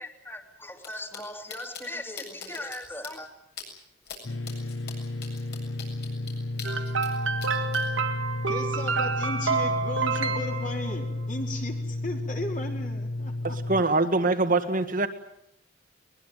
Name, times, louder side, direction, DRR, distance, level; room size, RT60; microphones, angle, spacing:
voice 1, 0.0-3.3, left 1 dB, 10° left, 5 dB, 2.9 m, -39 dB
sound 1, 0.8-0.9 1.1-1.2 1.5-1.8 2.2-2.8 3.0-3.1 3.6-3.7 4.1-4.2 4.5-7.1 7.4-7.8, left 7 dB, 55° left, 7.7 m, -41 dB
sound 2, 4.2-13.8, left 2 dB, 80° left, 1.0 m, -32 dB
sound 3, 6.6-11.3, right 4 dB, 90° right, 2.3 m, -29 dB
voice 2, 8.5-13.6, left 1 dB, 40° left, 2 dB, 4.7 m, -36 dB
voice 3, 13.4-15.1, right 3 dB, 45° right, 7 dB, 1.7 m, -24 dB
22.5 x 21.5 x 9.2 m, 0.76 s
head